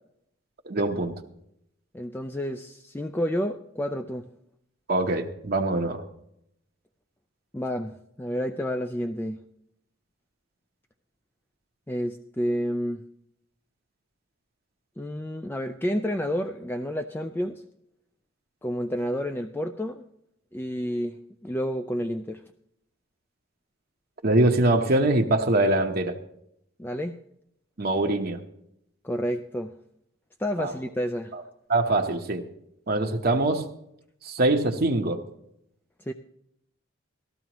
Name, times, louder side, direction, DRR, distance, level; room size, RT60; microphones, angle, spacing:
voice 1, 0.6-1.1 4.9-6.0 24.2-26.2 27.8-28.4 30.6-30.7 31.3-31.4 31.7-32.4 32.9-33.7 34.2-35.2, right 2 dB, 45° right, 2 dB, 0.9 m, -23 dB
voice 2, 1.9-4.3 7.5-9.4 11.9-13.0 15.0-17.6 18.6-20.0 20.5-22.4 26.8-27.2 29.0-29.7 30.4-31.3 36.0-36.1, equal, 10° left, 7 dB, 0.4 m, -30 dB
18.5 x 14.0 x 3.0 m, 0.76 s
head